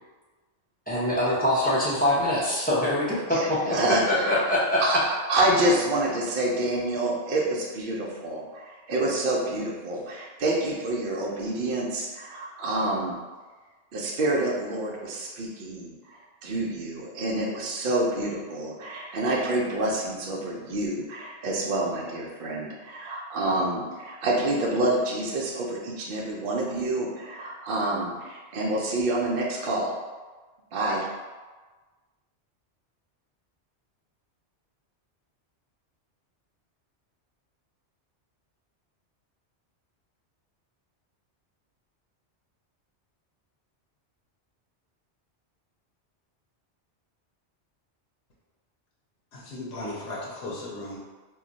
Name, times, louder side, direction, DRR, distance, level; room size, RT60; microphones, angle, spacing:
voice 1, 0.9-4.8, left 1 dB, 10° left, -9 dB, 0.5 m, -24 dB
voice 2, 3.3-4.4 4.8-5.0 5.3-13.2 13.9-29.9 30.7-31.1, right 1 dB, 60° right, -3 dB, 0.6 m, -27 dB
voice 3, 49.3-51.0, left 2 dB, 70° left, -5 dB, 0.8 m, -36 dB
2.3 x 2.1 x 3.8 m, 1.3 s
omnidirectional pair, 1.2 m